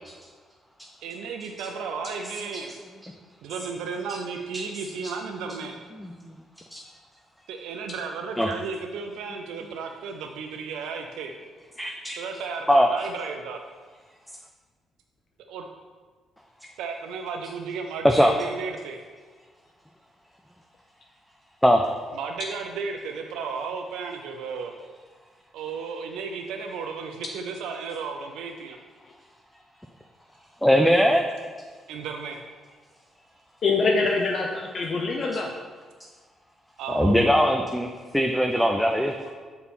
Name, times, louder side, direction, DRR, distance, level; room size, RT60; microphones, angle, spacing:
voice 1, 1.0-2.7 3.4-5.8 7.5-11.3 12.2-13.6 15.5-15.7 16.8-19.0 22.1-24.7 25.5-28.8 31.9-32.4 36.8-37.2, right 5 dB, 90° right, 4 dB, 0.4 m, -34 dB
voice 2, 6.0-6.4 6.7-6.8 8.4-8.5 11.8-12.2 12.7-13.1 18.0-18.3 21.6-21.8 30.6-31.2 36.9-39.1, equal, 5° left, 3 dB, 0.4 m, -21 dB
voice 3, 33.6-35.5 39.2-39.3, left 3 dB, 50° left, 0 dB, 0.5 m, -24 dB
5.5 x 4.3 x 4.2 m, 1.5 s
cardioid pair, 90°, 0 cm